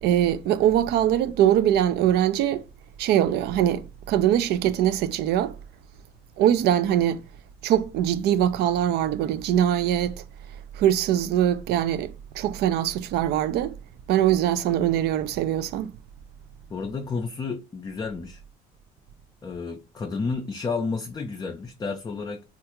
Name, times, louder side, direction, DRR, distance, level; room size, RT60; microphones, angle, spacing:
voice 1, 0.0-2.6 3.0-5.5 6.4-7.2 7.6-10.1 10.8-13.7 14.1-15.9, right 11 dB, 75° right, 0.4 m, -22 dB
voice 2, 16.7-18.4 19.4-22.4, left 4 dB, 25° left, 0.4 m, -31 dB
3.3 x 2.4 x 2.9 m
cardioid pair, 110°, 17 cm